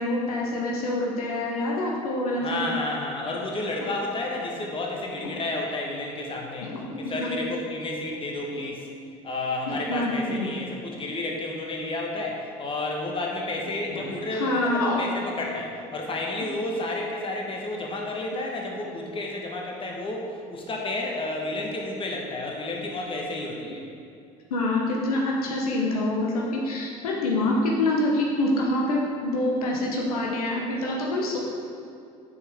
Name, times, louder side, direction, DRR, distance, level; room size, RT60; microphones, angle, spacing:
voice 1, 0.0-2.6 6.6-6.9 7.2-7.3 9.7-10.5 14.0-15.0 24.5-31.4, left 1 dB, 90° left, -2 dB, 0.9 m, -26 dB
voice 2, 2.4-8.9 9.2-23.8, left 2 dB, 30° left, -1 dB, 1.3 m, -31 dB
6.9 x 4.7 x 3.5 m, 2.5 s
hypercardioid pair, 70°, 18 cm